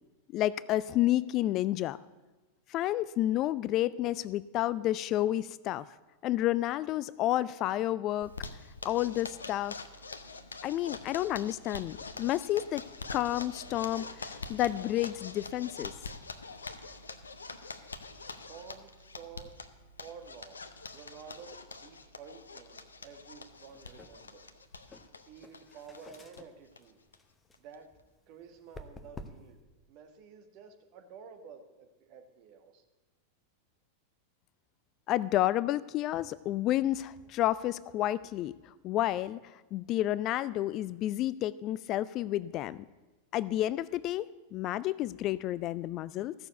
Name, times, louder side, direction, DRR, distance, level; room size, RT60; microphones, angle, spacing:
voice 1, 0.3-2.0 2.7-5.9 6.2-8.3 8.8-9.7 10.6-12.8 13.1-15.9 35.1-38.5 38.8-42.8 43.3-46.3, left 14 dB, 35° left, 19 dB, 0.3 m, -30 dB
Zipper (clothing), 8.2-26.4 26.7-26.8 27.1-27.2 27.5-28.0, left 3 dB, 75° left, 0.7 m, -45 dB
voice 2, 18.5-19.6 20.0-20.6 20.9-24.5 25.3-27.0 27.6-27.9 28.3-29.6 29.9-32.8, right 6 dB, 45° right, 6 dB, 1.5 m, -51 dB
sound 1, 23.5-29.6, left 2 dB, 15° left, 0.8 m, -52 dB
14.0 x 6.9 x 8.1 m, 1.2 s
figure-of-eight pair, 90°, 0 cm